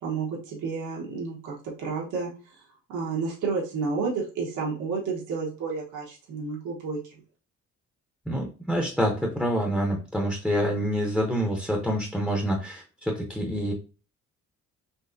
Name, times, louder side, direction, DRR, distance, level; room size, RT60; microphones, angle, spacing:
voice 1, 0.0-2.3 2.9-7.0, right 4 dB, 80° right, -3 dB, 1.4 m, -30 dB
voice 2, 8.3-13.7, equal, ahead, 0 dB, 0.8 m, -27 dB
4.2 x 2.8 x 2.6 m, 0.35 s
cardioid pair, 90°, 30 cm